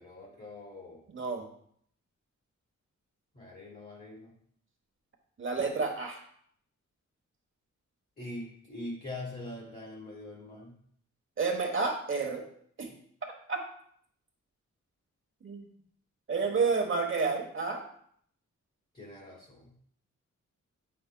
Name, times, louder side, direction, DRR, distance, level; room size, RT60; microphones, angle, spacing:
voice 1, 0.0-1.0 3.3-4.4 8.2-10.8 18.9-19.8, left 1 dB, 30° left, -5 dB, 1.1 m, -43 dB
voice 2, 1.1-1.4 5.4-6.2 11.4-12.4 12.8-12.9 13.5-13.6 15.4-15.7 16.3-17.8, right 4 dB, 40° right, 2 dB, 1.1 m, -30 dB
8.5 x 5.6 x 2.2 m, 0.64 s
wide cardioid pair, 175°, 30 cm